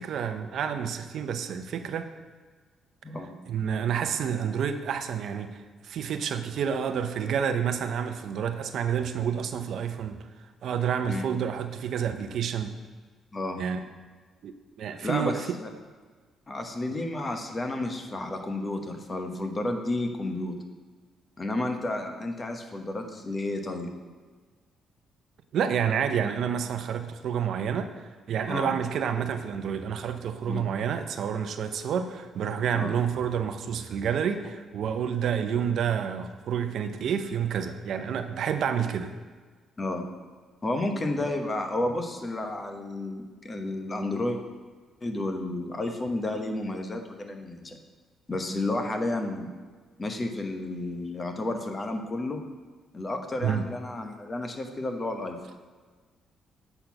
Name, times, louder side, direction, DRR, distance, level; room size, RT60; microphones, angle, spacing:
voice 1, 0.0-2.1 3.5-10.2 10.6-12.7 13.6-13.8 14.4-15.5 25.5-39.1 53.4-53.6, right 8 dB, 70° right, 8 dB, 0.5 m, -29 dB
voice 2, 13.3-13.6 15.0-15.7 16.5-20.6 21.4-23.9 28.5-28.7 30.5-30.7 32.7-32.9 39.8-40.1 40.6-44.4 45.0-47.8 48.3-49.5 50.0-52.4 52.9-55.4, left 2 dB, 30° left, 5 dB, 1.0 m, -31 dB
7.8 x 4.3 x 5.8 m, 1.4 s
cardioid pair, 90°, 0 cm